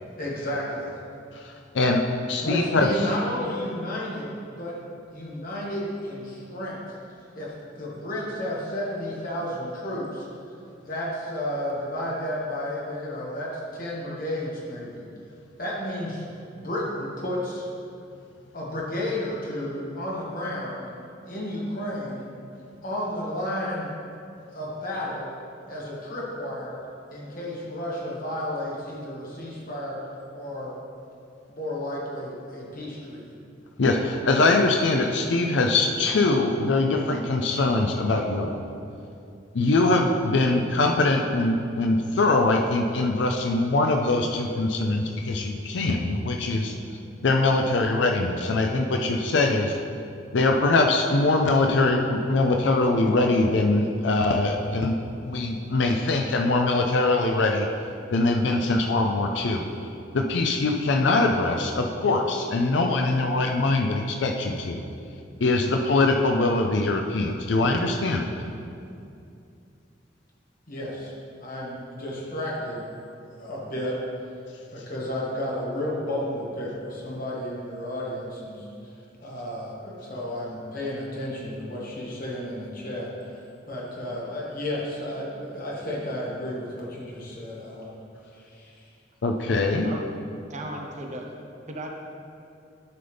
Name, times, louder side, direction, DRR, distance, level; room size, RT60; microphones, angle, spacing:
voice 1, 0.2-0.9 2.4-4.7 5.1-6.8 7.4-10.3 10.8-15.0 15.6-16.2 16.5-17.7 18.5-20.9 21.3-22.3 22.8-23.9 24.5-25.3 25.7-26.8 27.1-30.0 30.3-30.7 31.5-33.3 70.7-71.1 71.4-72.8 73.4-74.0 74.7-78.7 79.2-87.9 88.3-88.9, left 1 dB, 50° left, -5 dB, 1.8 m, -32 dB
voice 2, 1.3-2.0 2.3-3.1 33.8-38.6 39.5-46.8 47.2-49.7 50.3-55.0 55.2-57.7 58.1-59.6 60.1-64.8 65.4-68.3 89.2-89.9, left 2 dB, 75° left, 3 dB, 0.5 m, -22 dB
voice 3, 90.5-91.3 91.7-91.9, right 1 dB, 40° right, 1 dB, 0.8 m, -35 dB
11.5 x 5.4 x 3.4 m, 2.5 s
head